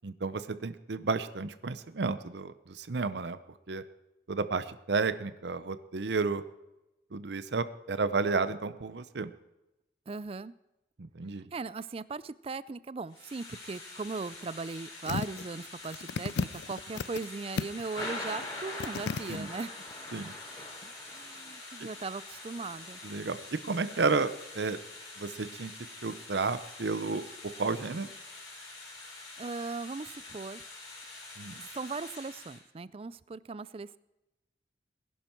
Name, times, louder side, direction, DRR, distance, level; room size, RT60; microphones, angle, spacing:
voice 1, 0.0-3.4 3.7-3.8 4.3-6.4 7.1-9.3 11.0-11.5 19.3-19.5 20.1-20.3 23.0-24.8 25.2-25.7 26.0-28.1 31.4-31.6, right 4 dB, 70° right, 13 dB, 0.7 m, -32 dB
voice 2, 10.1-10.5 11.5-19.7 20.8-23.0 29.4-30.6 31.5-34.0, right 4 dB, 30° right, 18 dB, 0.4 m, -38 dB
Thunder / Rain, 13.1-32.6, left 2 dB, 25° left, 4.8 m, -45 dB
sound 1, 15.0-15.4 15.8-17.3 17.6-18.0 18.4-18.5 18.8-19.4 19.9-20.0, left 5 dB, 75° left, 0.4 m, -34 dB
20.0 x 11.0 x 4.5 m, 0.96 s
head